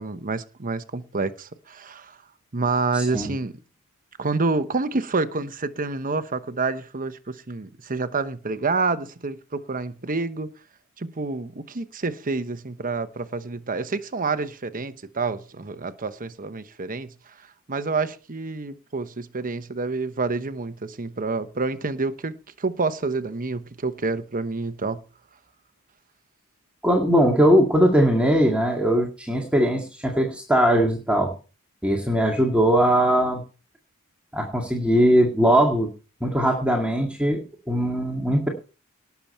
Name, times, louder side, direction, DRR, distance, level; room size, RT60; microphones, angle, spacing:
voice 1, 0.0-2.2 2.5-3.5 4.2-10.5 11.0-17.1 17.7-25.0, right 3 dB, 40° right, 1.0 m, -28 dB
voice 2, 2.9-3.3 26.8-31.3 31.8-33.4 34.3-35.9 36.2-38.5, equal, 5° right, 2.1 m, -20 dB
19.0 x 7.1 x 4.4 m
head